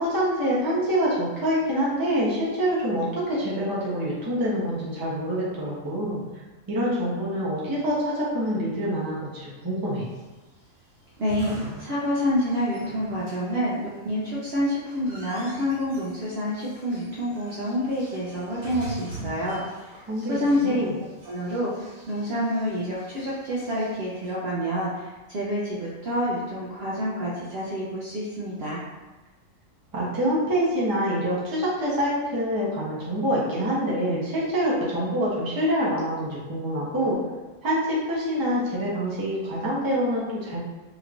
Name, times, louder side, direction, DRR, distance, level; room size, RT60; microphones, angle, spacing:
voice 1, 0.0-6.2 6.7-10.0 20.1-20.9 29.9-37.2 37.6-40.6, equal, 20° right, -7 dB, 0.7 m, -26 dB
sound 1, 10.0-24.3, right 3 dB, 80° right, 1.5 m, -45 dB
voice 2, 11.2-19.6 20.3-20.9 21.2-28.8, equal, 60° right, -7 dB, 0.8 m, -28 dB
3.1 x 3.0 x 2.5 m, 1.2 s
omnidirectional pair, 1.4 m